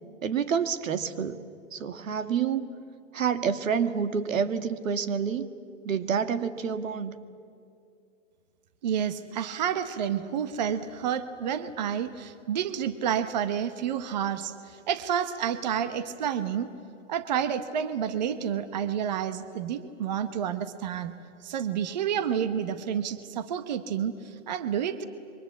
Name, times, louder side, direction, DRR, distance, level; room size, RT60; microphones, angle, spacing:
voice 1, 0.2-1.4 1.7-2.7 3.1-5.5 5.9-7.2, right 7 dB, 85° right, 11 dB, 1.9 m, -28 dB
voice 2, 8.8-16.7 17.1-21.1 21.4-25.0, right 8 dB, 35° right, 12 dB, 0.9 m, -29 dB
27.0 x 24.0 x 8.4 m, 2.5 s
hypercardioid pair, 175°, 39 cm